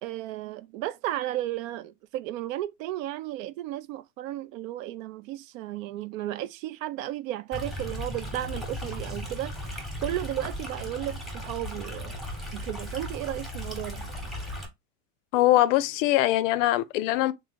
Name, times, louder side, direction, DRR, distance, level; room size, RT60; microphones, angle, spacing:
voice 1, 0.0-12.2 12.5-14.1, right 14 dB, 60° right, 0.6 m, -34 dB
Stream, 7.5-14.7, left 1 dB, ahead, 1.0 m, -36 dB
voice 2, 15.3-17.3, left 15 dB, 55° left, 0.5 m, -22 dB
3.1 x 2.6 x 3.8 m
supercardioid pair, 120°, 45 cm